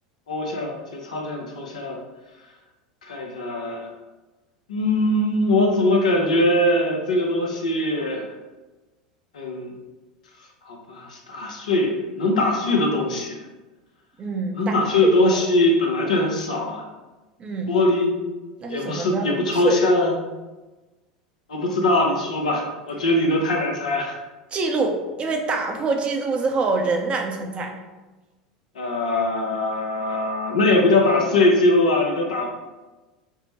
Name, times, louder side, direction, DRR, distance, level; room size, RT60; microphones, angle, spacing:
voice 1, 0.3-2.0 3.0-3.9 4.7-8.3 9.3-9.7 10.6-13.4 14.5-16.8 17.7-18.2 18.7-20.1 21.5-24.2 28.7-32.5, left 2 dB, 70° left, 0 dB, 0.7 m, -21 dB
voice 2, 14.2-14.8 15.0-15.1 17.4-17.8 18.6-19.8 24.5-27.7, right 3 dB, 30° right, 3 dB, 0.5 m, -25 dB
4.4 x 2.0 x 3.0 m, 1.1 s
figure-of-eight pair, 80°, 4 cm